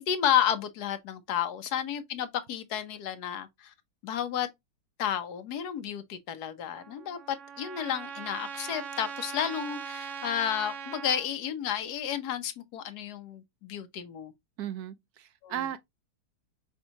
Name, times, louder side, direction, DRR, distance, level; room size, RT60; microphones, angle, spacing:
voice 1, 0.1-3.7 4.0-4.5 5.0-14.3 15.4-15.6, left 9 dB, 85° left, 1.3 m, -31 dB
Trumpet, 6.7-11.3, right 7 dB, 55° right, 1.2 m, -40 dB
voice 2, 14.6-15.8, right 11 dB, 75° right, 1.2 m, -36 dB
5.4 x 3.5 x 2.8 m
omnidirectional pair, 1.6 m